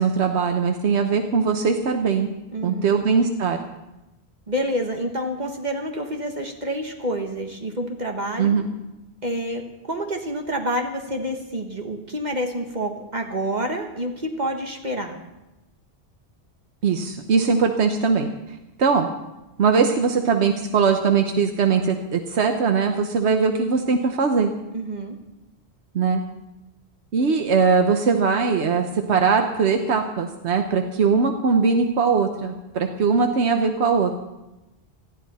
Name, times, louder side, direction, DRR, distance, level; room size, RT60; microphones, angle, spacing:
voice 1, 0.0-2.3 2.6-3.6 8.4-8.7 16.8-18.3 18.8-19.1 19.6-24.5 25.9-26.2 27.1-34.1, right 5 dB, 90° right, 5 dB, 1.2 m, -20 dB
voice 2, 2.5-2.9 4.5-8.6 9.2-9.6 9.9-15.2 24.7-25.2, equal, 45° right, 3 dB, 1.5 m, -28 dB
19.5 x 14.0 x 4.2 m, 1.0 s
omnidirectional pair, 1.1 m